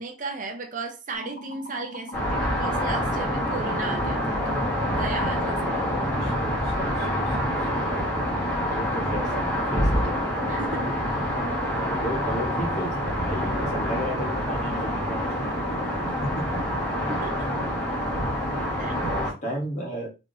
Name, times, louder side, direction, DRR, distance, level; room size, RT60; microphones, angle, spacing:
voice 1, 0.0-5.9 10.5-10.8 17.1-17.5 18.7-19.2, right 3 dB, 45° right, 0.6 m, -36 dB
sound 1, 1.1-19.0, equal, 60° left, 0.9 m, -40 dB
sound 2, 2.1-19.3, equal, 5° left, 1.1 m, -27 dB
voice 2, 5.8-7.4 8.6-10.3 11.7-16.0 16.4-16.5 18.7-20.1, equal, 40° left, 1.1 m, -34 dB
3.3 x 2.9 x 2.6 m
head